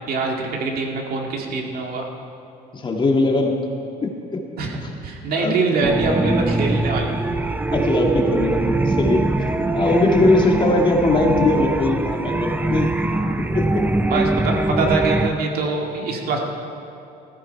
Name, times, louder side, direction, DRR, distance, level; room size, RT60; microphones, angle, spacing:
voice 1, 0.1-2.1 4.6-7.2 13.0-13.4 14.1-16.4, right 3 dB, 65° right, 1 dB, 2.1 m, -24 dB
voice 2, 2.7-3.6 4.0-4.4 5.4-5.6 7.7-12.9 13.5-13.8, left 2 dB, 30° left, 1 dB, 1.8 m, -20 dB
sound 1, 5.8-15.3, right 2 dB, 10° right, 0.5 m, -22 dB
14.5 x 14.0 x 4.6 m, 2.8 s
cardioid pair, 110°, 17 cm